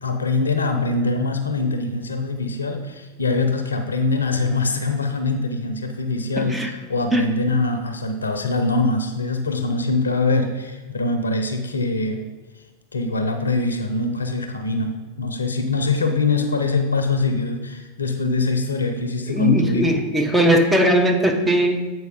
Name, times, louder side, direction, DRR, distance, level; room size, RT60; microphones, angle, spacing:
voice 1, 0.0-12.2 12.9-20.0, left 3 dB, 75° left, 7 dB, 0.7 m, -23 dB
voice 2, 6.4-6.7 7.1-7.3 19.3-21.9, right 1 dB, 5° right, 3 dB, 0.8 m, -19 dB
7.8 x 4.7 x 5.0 m, 1.2 s
figure-of-eight pair, 90°, 0 cm